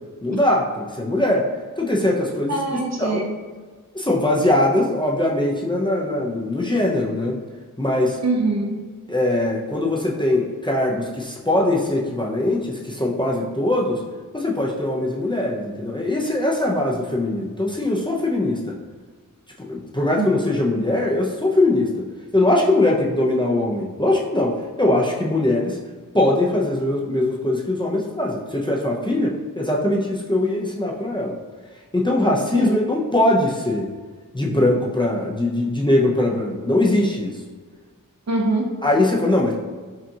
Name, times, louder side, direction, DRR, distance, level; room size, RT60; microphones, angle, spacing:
voice 1, 0.2-1.5 1.8-3.3 3.9-7.4 7.8-8.2 9.1-14.0 14.3-18.7 19.6-22.1 22.3-25.8 26.1-31.3 31.9-33.9 34.3-37.4 38.8-39.5, left 1 dB, 15° left, -3 dB, 0.6 m, -21 dB
voice 2, 2.5-3.3 8.2-8.8 20.2-20.5 32.5-32.8 38.3-38.7, right 2 dB, 50° right, 0 dB, 0.7 m, -23 dB
5.4 x 2.4 x 2.7 m, 1.4 s
wide cardioid pair, 55°, 34 cm